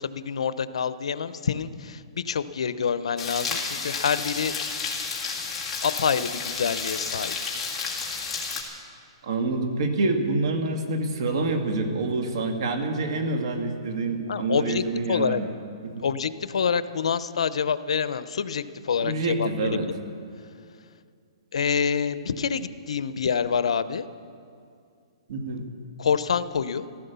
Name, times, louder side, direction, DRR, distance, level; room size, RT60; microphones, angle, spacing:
voice 1, 0.0-4.5 5.8-7.3 14.3-14.8 15.1-15.4 16.0-19.8 21.5-24.0 26.0-26.8, left 6 dB, 80° left, 14 dB, 0.7 m, -26 dB
sound 1, 3.2-8.6, left 5 dB, 10° left, 1.9 m, -31 dB
voice 2, 9.2-15.5 15.8-16.1 19.0-19.9 25.3-25.6, right 3 dB, 55° right, 5 dB, 1.9 m, -27 dB
15.0 x 13.5 x 6.9 m, 2.3 s
hypercardioid pair, 160°, 3 cm